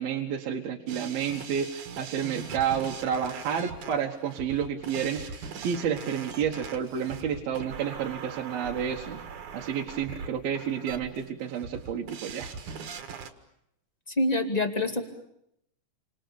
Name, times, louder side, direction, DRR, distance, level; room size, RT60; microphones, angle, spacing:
voice 1, 0.0-9.2 9.5-12.5, right 8 dB, 75° right, 0 dB, 3.2 m, -30 dB
sound 1, 0.9-13.3, right 5 dB, 60° right, 3.0 m, -41 dB
voice 2, 14.1-15.0, left 2 dB, 15° left, 5 dB, 1.8 m, -26 dB
29.5 x 26.5 x 7.0 m, 0.77 s
omnidirectional pair, 4.4 m